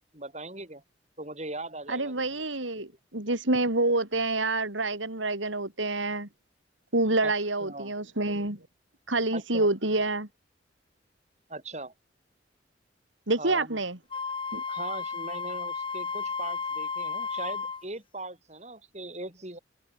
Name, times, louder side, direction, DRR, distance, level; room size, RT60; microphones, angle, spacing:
voice 1, 0.1-0.8 1.2-2.4 2.7-2.9 7.2-7.3 7.6-7.9 9.3-9.7 11.5-11.9 13.4-13.8 14.7-19.6, right 2 dB, 35° right, 6.7 m, -40 dB
voice 2, 1.9-6.3 6.9-8.6 9.1-10.3 13.3-14.0 14.5-14.6, right 2 dB, 85° right, 4.7 m, -27 dB
Wind instrument woodwind instrument, 14.1-17.8, left 5 dB, 25° left, 1.7 m, -33 dB
head